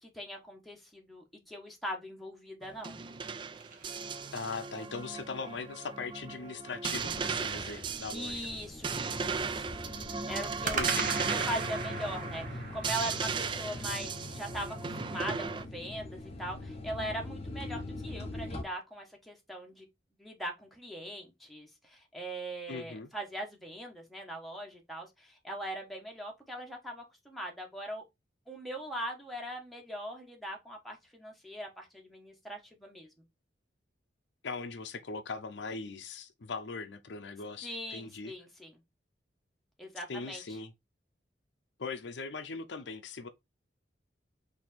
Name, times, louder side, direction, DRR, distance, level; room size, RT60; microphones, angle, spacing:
voice 1, 0.0-3.0 8.1-9.7 10.3-10.9 11.3-19.8 20.2-28.0 28.5-33.1 37.6-38.7 39.8-40.6, right 1 dB, ahead, 1.1 m, -40 dB
sound 1, 2.6-15.6, right 5 dB, 25° right, 0.3 m, -36 dB
sound 2, 2.9-4.8 10.6-14.9, right 4 dB, 45° right, 1.0 m, -39 dB
voice 2, 4.3-8.4 10.7-11.4 22.7-23.1 34.4-38.3 40.1-40.7 41.8-43.3, left 4 dB, 75° left, 0.6 m, -40 dB
sound 3, 6.9-18.6, left 2 dB, 35° left, 0.7 m, -43 dB
4.4 x 2.8 x 4.1 m
head